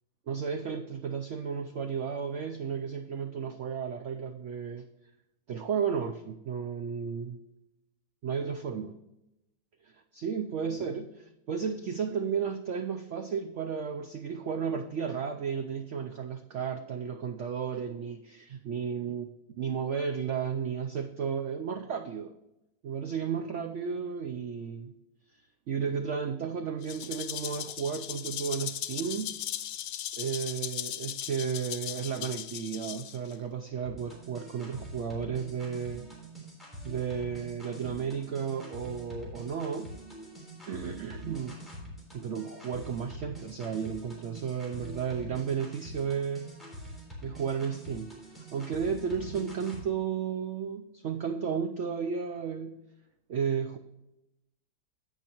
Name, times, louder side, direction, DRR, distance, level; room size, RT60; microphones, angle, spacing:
voice 1, 0.3-4.9 5.5-7.4 8.2-9.0 10.1-19.3 19.6-22.3 22.8-24.9 25.7-29.4 30.2-36.1 36.8-40.0 40.7-41.6 42.1-46.5 46.8-46.9 47.2-52.8 53.3-53.8, right 7 dB, 80° right, 7 dB, 0.6 m, -33 dB
Rattle (instrument), 26.8-33.3, left 11 dB, 85° left, 1.3 m, -38 dB
sound 1, 33.9-49.8, right 1 dB, ahead, 3.5 m, -45 dB
16.5 x 5.8 x 2.9 m, 0.94 s
omnidirectional pair, 1.9 m